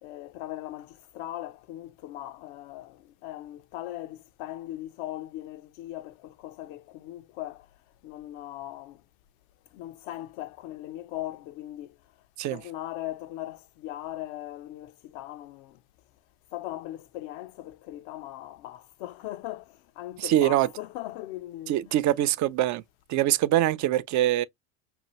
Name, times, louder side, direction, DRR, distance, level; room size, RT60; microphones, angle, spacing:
voice 1, 0.0-7.7 8.0-9.0 9.7-11.9 12.5-15.8 16.5-21.7, left 14 dB, 65° left, 0.7 m, -39 dB
voice 2, 20.2-20.7 21.7-22.8 23.1-24.4, right 13 dB, 45° right, 0.5 m, -23 dB
5.7 x 2.3 x 3.0 m
hypercardioid pair, 85°, 41 cm